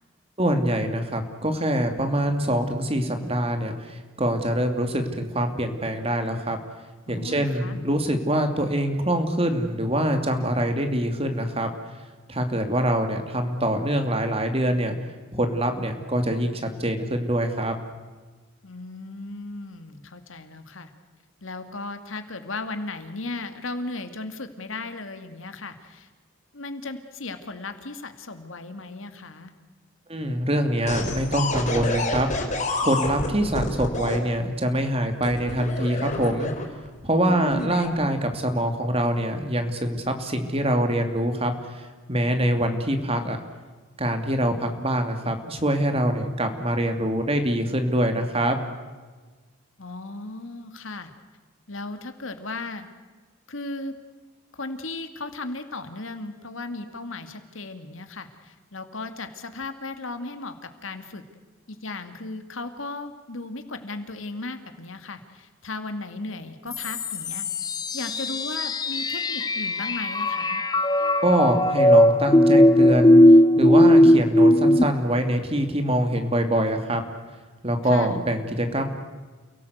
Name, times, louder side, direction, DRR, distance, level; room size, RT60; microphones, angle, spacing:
voice 1, 0.4-6.6 7.1-11.7 12.3-14.9 15.3-17.8 30.1-32.3 32.8-36.5 37.0-43.4 44.0-48.6 71.2-73.2 73.6-77.0 77.6-78.8, right 1 dB, 30° right, 6 dB, 2.7 m, -24 dB
voice 2, 7.1-7.8 18.6-20.9 21.4-26.1 26.5-29.5 37.3-37.9 49.8-51.1 51.7-52.9 53.5-53.9 54.5-61.2 61.7-67.5 67.9-70.6 77.8-78.2, left 2 dB, 75° left, 8 dB, 2.4 m, -36 dB
sound 1, 30.9-34.2 35.2-36.9 37.5-37.9, left 2 dB, 35° left, 3.9 m, -28 dB
sound 2, 66.7-74.8, left 1 dB, 20° left, 0.8 m, -18 dB
29.5 x 18.0 x 8.1 m, 1.3 s
head